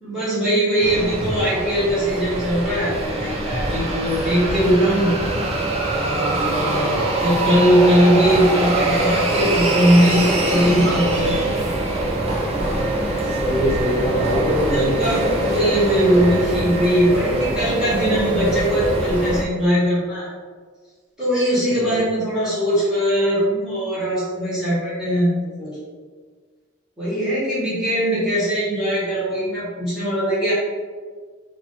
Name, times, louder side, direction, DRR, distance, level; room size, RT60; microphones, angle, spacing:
voice 1, 0.0-5.1 5.9-11.4 14.7-20.3 21.2-25.3 25.6-25.7 27.0-30.5, equal, ahead, -12 dB, 1.4 m, -20 dB
sound 1, 0.8-19.4, right 2 dB, 30° right, 0.5 m, -23 dB
voice 2, 13.3-15.7 21.7-22.0, equal, 30° left, -4 dB, 0.9 m, -23 dB
3.0 x 2.7 x 3.9 m, 1.5 s
head